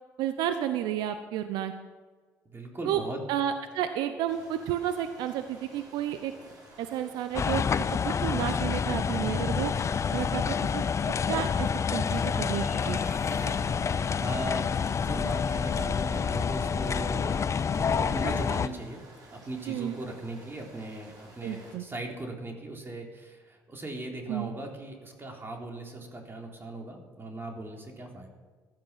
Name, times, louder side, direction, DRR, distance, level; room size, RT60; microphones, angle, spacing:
voice 1, 0.2-1.7 2.8-3.0 3.3-6.3 6.8-7.6 8.0-9.7 10.1-10.4 10.7-10.8 11.3-13.0 19.7-20.0 21.4-21.9 24.3-24.5, right 11 dB, 75° right, 9 dB, 0.8 m, -31 dB
voice 2, 2.5-3.2 13.1-14.7 15.0-17.4 17.7-19.0 19.3-28.3, right 2 dB, 30° right, 1 dB, 3.7 m, -39 dB
sound 1, 4.3-21.8, right 1 dB, 55° right, 6.3 m, -53 dB
sound 2, 7.3-18.7, left 6 dB, 40° left, 0.7 m, -28 dB
sound 3, 12.0-14.9, left 1 dB, 5° right, 4.7 m, -50 dB
15.5 x 12.5 x 5.8 m, 1.4 s
hypercardioid pair, 55°, 7 cm